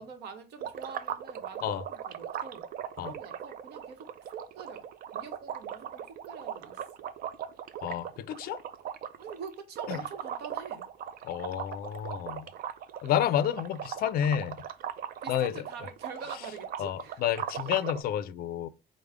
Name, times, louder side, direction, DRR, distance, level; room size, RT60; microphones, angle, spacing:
voice 1, 0.0-2.7 3.1-4.8 5.1-6.8 9.2-10.9 15.2-17.2, right 5 dB, 75° right, 0.9 m, -45 dB
sound 1, 0.6-18.0, right 9 dB, 60° right, 0.4 m, -39 dB
voice 2, 7.8-8.6 9.9-10.0 11.2-12.5 13.0-14.6 15.3-15.6 16.8-18.7, left 10 dB, 60° left, 0.4 m, -30 dB
4.8 x 2.1 x 3.3 m
cardioid pair, 110°, 17 cm